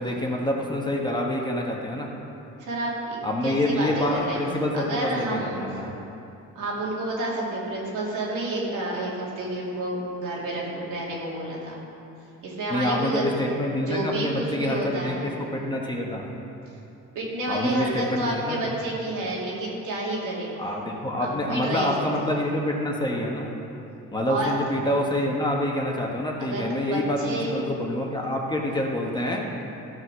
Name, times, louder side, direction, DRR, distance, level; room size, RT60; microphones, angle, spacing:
voice 1, 0.0-2.1 3.2-5.9 12.7-16.2 17.5-18.7 20.6-23.5 24.1-29.4, left 1 dB, 15° left, -1 dB, 1.7 m, -27 dB
voice 2, 2.6-4.4 4.7-5.8 6.5-11.8 12.4-13.2 13.9-15.3 17.1-20.5 21.2-22.0 24.3-24.5 26.4-27.6, right 1 dB, 80° right, -5 dB, 3.0 m, -30 dB
14.0 x 5.8 x 6.4 m, 2.8 s
cardioid pair, 90°, 30 cm